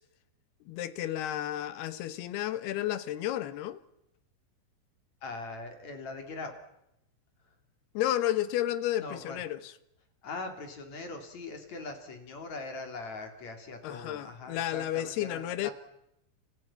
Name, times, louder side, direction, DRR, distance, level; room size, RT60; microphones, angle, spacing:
voice 1, 0.7-3.8 7.9-9.7 13.8-15.7, left 13 dB, 70° left, 2.8 m, -32 dB
voice 2, 5.2-6.5 9.0-9.4 10.2-15.7, left 3 dB, 40° left, 4.1 m, -41 dB
29.5 x 27.0 x 5.8 m
omnidirectional pair, 5.4 m